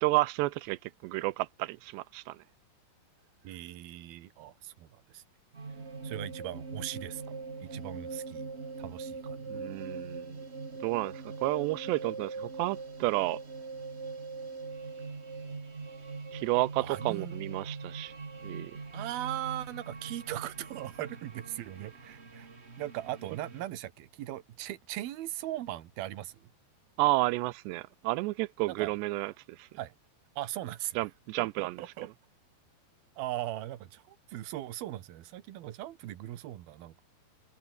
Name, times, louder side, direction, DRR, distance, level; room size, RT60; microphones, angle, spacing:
voice 1, 0.0-2.4 9.5-10.4 10.8-13.4 16.3-18.1 18.4-18.8 27.0-29.7 31.0-31.8, right 21 dB, 90° right, 2.8 m, -31 dB
voice 2, 3.4-5.2 6.0-7.2 7.7-8.5 8.8-9.4 16.8-17.3 18.9-22.5 22.8-26.5 28.7-28.9 29.8-29.9 30.4-31.0 31.4-32.1 33.2-37.0, right 14 dB, 65° right, 3.2 m, -39 dB
sound 1, 5.5-23.7, right 4 dB, 50° right, 0.7 m, -42 dB
omnidirectional pair, 4.9 m